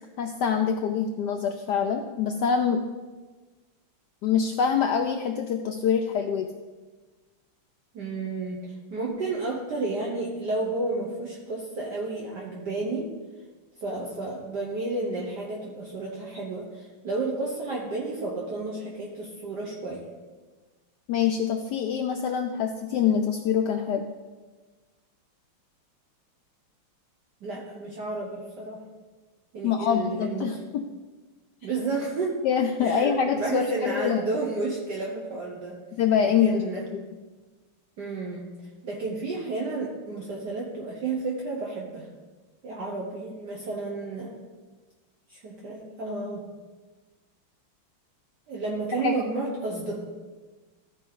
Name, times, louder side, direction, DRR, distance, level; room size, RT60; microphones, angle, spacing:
voice 1, 0.2-2.8 4.2-6.5 21.1-24.0 29.6-30.8 32.4-34.2 36.0-36.6 36.9-37.0 49.0-49.2, left 7 dB, 80° left, 4 dB, 0.9 m, -25 dB
voice 2, 7.9-13.1 13.8-20.1 27.4-28.8 29.5-30.6 31.6-32.4 32.8-35.8 36.3-36.8 38.0-38.5 38.8-42.1 42.6-44.4 45.3-46.5 48.5-50.0, right 3 dB, 60° right, -2 dB, 1.4 m, -31 dB
14.0 x 5.0 x 3.9 m, 1.3 s
omnidirectional pair, 2.3 m